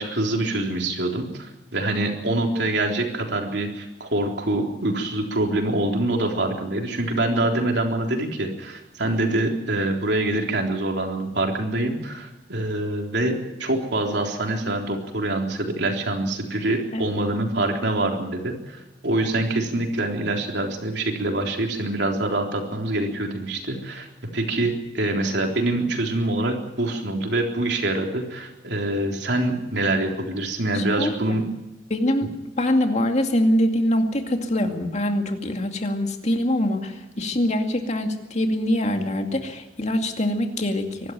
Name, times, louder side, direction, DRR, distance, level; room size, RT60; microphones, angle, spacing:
voice 1, 0.0-24.1 24.3-31.5, right 2 dB, 65° right, 2 dB, 3.8 m, -25 dB
voice 2, 30.7-31.4 31.9-32.3 32.6-41.1, left 1 dB, 40° left, 4 dB, 2.4 m, -24 dB
24.0 x 12.5 x 9.4 m, 1.0 s
head